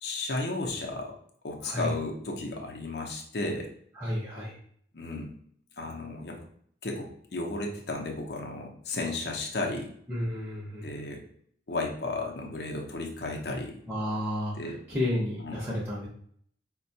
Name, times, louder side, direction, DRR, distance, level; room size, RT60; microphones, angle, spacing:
voice 1, 0.0-1.1 1.4-3.7 4.9-5.3 5.8-6.4 6.8-9.9 10.8-11.3 11.7-13.8 14.6-14.8 15.4-15.6, left 2 dB, 60° left, 1 dB, 0.6 m, -34 dB
voice 2, 4.0-4.5 10.1-10.9 13.9-14.6 14.9-16.1, left 1 dB, 10° right, -8 dB, 0.7 m, -31 dB
5.1 x 2.2 x 2.7 m, 0.63 s
head